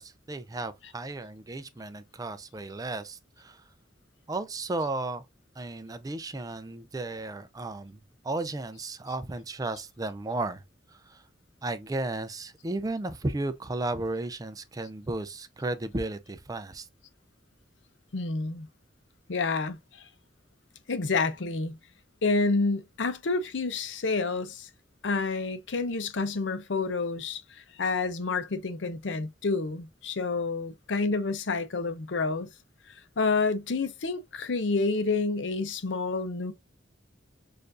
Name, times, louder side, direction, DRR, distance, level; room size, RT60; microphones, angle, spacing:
voice 1, 0.0-3.7 4.3-5.3 5.6-10.6 10.9-11.2 11.6-16.9, right 2 dB, 20° right, 0.4 m, -34 dB
voice 2, 18.1-18.7 19.3-20.0 20.9-21.8 22.2-24.7 25.0-32.5 33.2-36.5, left 3 dB, 70° left, 0.6 m, -29 dB
6.6 x 2.5 x 2.5 m
head